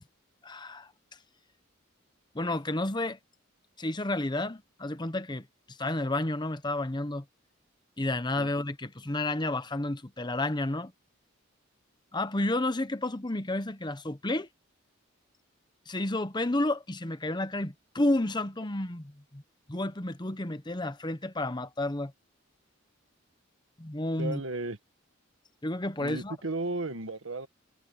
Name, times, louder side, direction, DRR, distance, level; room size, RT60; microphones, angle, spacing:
voice 1, 0.4-0.9 2.3-3.2 3.8-7.2 8.0-10.9 12.1-14.5 15.9-19.4 19.7-22.1 23.8-24.4 25.6-26.4, left 2 dB, 20° left, 1.0 m, -31 dB
voice 2, 24.2-24.8 26.0-27.5, right 2 dB, 75° right, 1.7 m, -34 dB
head